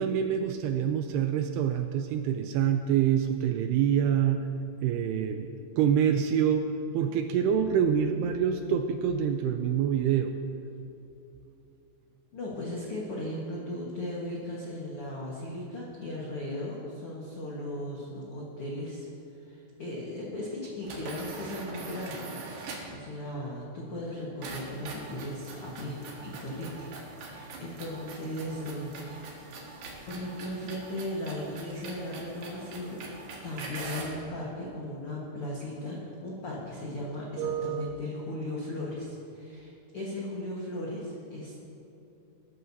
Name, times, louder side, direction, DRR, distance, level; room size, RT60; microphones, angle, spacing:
voice 1, 0.0-4.5 4.8-5.5 5.8-10.3 37.4-37.9, right 8 dB, 85° right, 6 dB, 2.4 m, -26 dB
voice 2, 12.3-19.1 19.3-26.9 27.2-29.3 30.1-33.0 33.4-41.6, left 1 dB, 75° left, -5 dB, 1.3 m, -37 dB
sound 1, 20.8-23.0 24.4-34.2, right 3 dB, 65° right, 3.4 m, -43 dB
20.5 x 11.0 x 2.8 m, 2.8 s
omnidirectional pair, 5.0 m